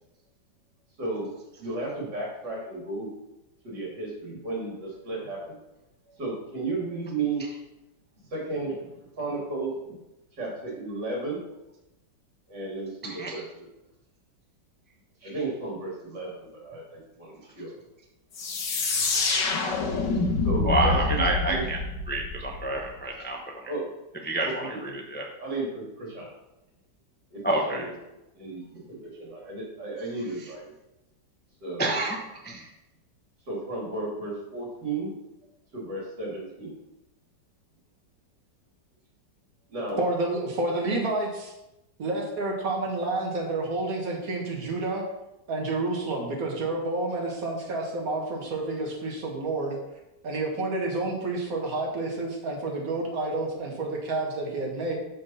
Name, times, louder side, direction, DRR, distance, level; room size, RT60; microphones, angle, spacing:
voice 1, 1.0-1.3 1.6-3.1 3.6-5.5 6.2-7.4 8.3-8.9 9.2-10.0 10.4-11.4 12.5-13.7 15.2-17.7 18.9-19.2 20.4-21.6 23.7-23.9 24.4-24.8 25.4-26.3 27.3-27.9 28.3-30.7 31.6-32.0 33.5-35.1 35.7-36.7 39.7-40.0, right 3 dB, 65° right, -3 dB, 3.4 m, -34 dB
voice 2, 13.0-13.4 20.6-21.8 22.1-23.7 24.2-25.3 27.4-27.9 30.4-30.5 31.8-32.2 32.4-32.7, right 2 dB, 10° left, 0 dB, 0.5 m, -28 dB
sound 1, 18.3-22.9, left 3 dB, 75° left, 1.9 m, -27 dB
voice 3, 40.0-41.5 42.0-45.0 45.5-49.8 50.2-55.0, right 2 dB, 50° right, 0 dB, 2.0 m, -29 dB
6.4 x 6.0 x 5.6 m, 0.92 s
omnidirectional pair, 2.0 m